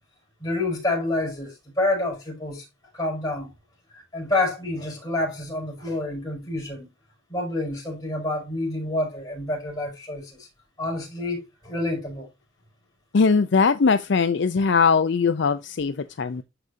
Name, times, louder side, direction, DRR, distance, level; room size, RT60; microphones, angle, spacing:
voice 1, 0.4-2.7 2.9-3.5 3.9-6.9 7.3-10.5 10.8-12.3, left 2 dB, 20° left, 5.9 m, -28 dB
voice 2, 13.1-16.4, left 5 dB, 55° left, 0.5 m, -20 dB
12.5 x 5.0 x 2.6 m
head